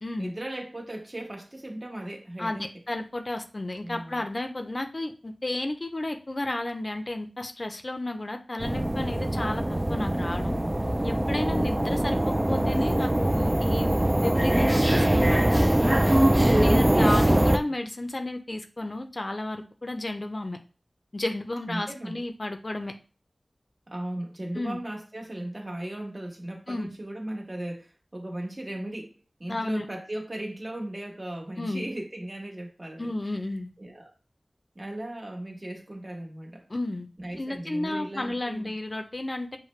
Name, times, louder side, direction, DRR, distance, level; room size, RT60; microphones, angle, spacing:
voice 1, 0.2-2.7 3.8-4.2 11.5-12.0 21.7-22.2 23.9-33.1 33.8-34.1 34.7-36.7 37.2-38.7, right 1 dB, 40° right, 0 dB, 1.2 m, -37 dB
voice 2, 2.4-9.6 9.9-10.6 11.0-15.8 16.6-20.6 21.1-22.9 24.5-24.8 26.7-26.9 29.5-29.9 31.6-31.9 33.0-33.7 36.7-37.1 37.4-39.6, left 2 dB, 50° left, 6 dB, 0.5 m, -32 dB
sound 1, 8.6-17.6, right 1 dB, 25° right, 0.4 m, -22 dB
6.4 x 2.1 x 3.2 m, 0.35 s
wide cardioid pair, 50°, 0 cm